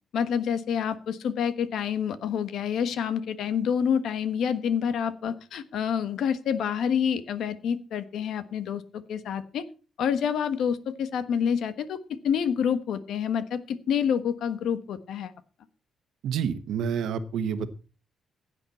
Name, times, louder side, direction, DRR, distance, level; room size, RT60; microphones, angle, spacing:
voice 1, 0.1-9.6 10.0-15.3, left 7 dB, 70° left, 12 dB, 1.3 m, -28 dB
voice 2, 16.2-17.7, right 7 dB, 75° right, 11 dB, 1.2 m, -28 dB
16.0 x 9.1 x 4.3 m, 0.35 s
cardioid pair, 145°, 0 cm